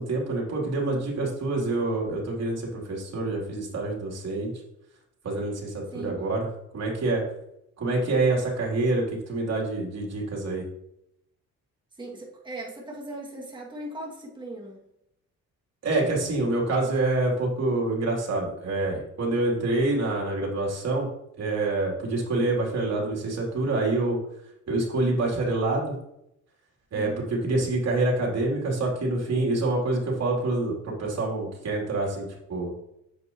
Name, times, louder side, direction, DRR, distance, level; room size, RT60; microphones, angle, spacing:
voice 1, 0.0-4.5 5.2-6.5 6.7-7.2 7.8-10.6 15.8-21.1 21.4-24.2 24.7-26.0 26.9-32.7, right 2 dB, 55° right, -2 dB, 3.5 m, -26 dB
voice 2, 5.9-6.2 11.9-14.8 26.9-27.3, right 1 dB, 15° right, -4 dB, 2.5 m, -39 dB
8.4 x 7.8 x 3.1 m, 0.80 s
cardioid pair, 90°, 30 cm